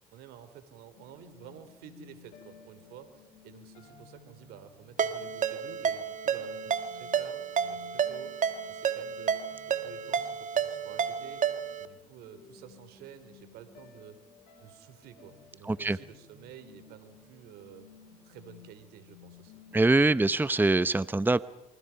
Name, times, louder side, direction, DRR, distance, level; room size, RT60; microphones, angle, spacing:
voice 1, 0.1-8.4 8.6-11.4 11.8-14.2 14.6-17.9 18.2-19.6, right 9 dB, 80° right, 11 dB, 3.2 m, -51 dB
sound 1, 0.9-19.8, left 6 dB, 75° left, 7.6 m, -56 dB
Ringtone, 5.0-11.9, right 7 dB, 50° right, 2.0 m, -31 dB
voice 2, 15.7-16.0 19.7-21.4, right 2 dB, 10° right, 16 dB, 0.8 m, -23 dB
28.5 x 24.5 x 5.8 m, 0.99 s
supercardioid pair, 65°, 16 cm